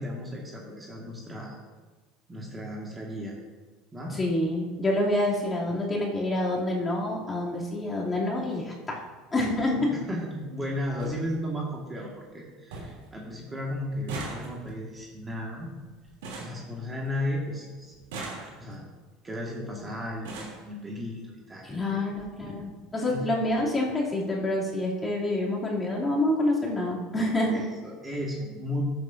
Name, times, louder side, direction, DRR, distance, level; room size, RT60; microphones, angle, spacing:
voice 1, 0.0-1.6 2.3-3.3 3.9-4.1 9.7-9.8 10.1-15.7 16.4-17.9 18.6-18.9 19.2-22.0 23.1-23.2 27.5-28.8, left 1 dB, 20° right, -2 dB, 1.8 m, -35 dB
voice 2, 4.1-9.0 9.3-9.9 21.6-22.6 22.9-27.6, left 1 dB, 20° left, -5 dB, 2.9 m, -27 dB
sound 1, 9.0-9.1 10.3-10.4 10.6-10.7 11.0-11.2 11.6-12.1 12.4-12.5 12.7-13.1 13.4-17.3 17.9-18.9 19.7-19.8 20.1-20.7 21.6-21.7 22.0-22.2 22.5-22.6, right 3 dB, 85° right, 2.9 m, -41 dB
14.0 x 7.8 x 2.7 m, 1.3 s
supercardioid pair, 105°, 0 cm